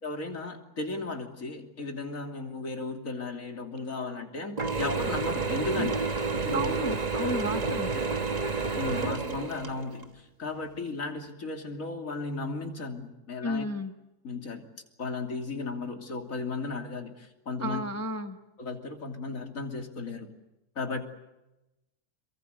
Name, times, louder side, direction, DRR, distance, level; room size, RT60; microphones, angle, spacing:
voice 1, 0.0-6.7 7.9-8.0 8.3-13.7 14.2-14.7 15.0-17.8 18.6-20.3 20.8-21.0, left 3 dB, 80° left, 4 dB, 3.3 m, -35 dB
Mechanisms / Drill, 4.6-10.1, right 4 dB, 30° right, 1.3 m, -30 dB
voice 2, 6.5-7.9 13.4-13.9 17.6-18.4, equal, 10° left, 7 dB, 1.1 m, -32 dB
27.5 x 23.0 x 8.1 m, 0.99 s
omnidirectional pair, 1.4 m